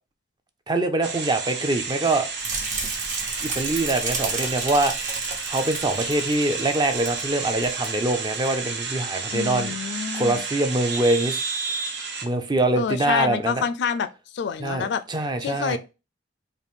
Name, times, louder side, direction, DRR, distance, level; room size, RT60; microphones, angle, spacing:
voice 1, 0.7-2.3 3.4-4.9 5.5-9.7 10.1-11.4 12.2-13.7 14.6-15.8, right 2 dB, 25° right, 0.5 m, -24 dB
sound 1, 1.0-12.2, right 5 dB, 65° right, 0.8 m, -31 dB
sound 2, 2.4-7.3 7.5-7.9 8.3-8.5, right 3 dB, 45° right, 1.0 m, -32 dB
voice 2, 9.3-10.4 12.8-14.1 14.3-15.0 15.4-15.8, left 7 dB, 65° left, 0.4 m, -27 dB
4.0 x 2.5 x 3.5 m
head